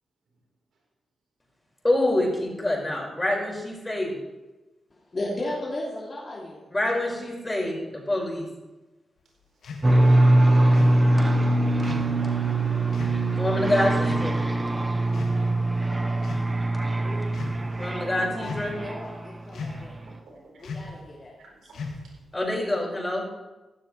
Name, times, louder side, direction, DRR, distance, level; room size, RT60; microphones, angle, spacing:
voice 1, 1.8-4.2 6.7-8.5 13.4-14.4 17.8-18.8 22.3-23.2, left 1 dB, 20° left, -1 dB, 5.2 m, -26 dB
voice 2, 5.1-6.6 17.0-17.3 18.2-18.6 18.8-20.0 20.6-21.3, left 1 dB, 40° left, -5 dB, 2.9 m, -35 dB
sound 1, 9.6-9.9 10.7-11.0 11.8-12.1 12.9-13.2 14.0-14.3 15.1-15.7 16.2-16.5 17.2-17.6 18.4-18.9 19.5-19.9 20.6-21.0 21.7-22.2, left 4 dB, 75° left, 1.9 m, -37 dB
sound 2, 9.8-19.4, right 1 dB, 25° right, 1.3 m, -22 dB
voice 3, 12.1-12.8 13.2-13.7 20.1-20.7 21.7-22.1, right 3 dB, 75° right, -1 dB, 4.0 m, -53 dB
15.0 x 12.0 x 3.3 m, 1.1 s
supercardioid pair, 45°, 0 cm